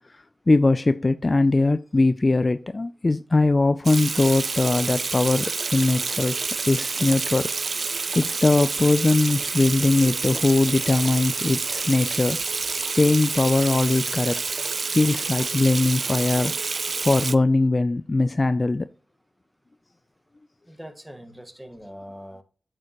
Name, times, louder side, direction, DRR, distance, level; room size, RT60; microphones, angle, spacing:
voice 1, 0.5-6.4 6.7-7.5 8.1-12.4 12.9-14.7 14.9-18.9, left 2 dB, 35° left, 0.4 m, -21 dB
Water tap faucet / Sink (filling or washing), 3.8-17.3, right 4 dB, 60° right, 0.5 m, -28 dB
voice 2, 20.7-22.4, equal, 10° right, 1.5 m, -42 dB
8.4 x 6.7 x 3.0 m
cardioid pair, 65°, 0 cm